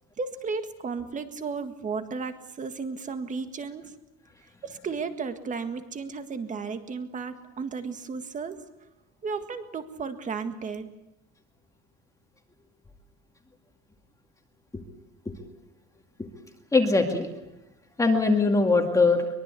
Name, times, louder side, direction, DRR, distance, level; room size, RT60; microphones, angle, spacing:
voice 1, 0.2-3.9 4.6-8.6 9.2-10.9, right 5 dB, 25° right, 9 dB, 1.8 m, -34 dB
voice 2, 16.7-17.3 18.0-19.3, left 3 dB, 10° left, 3 dB, 2.1 m, -21 dB
23.5 x 22.5 x 8.4 m, 0.96 s
cardioid pair, 175°, 31 cm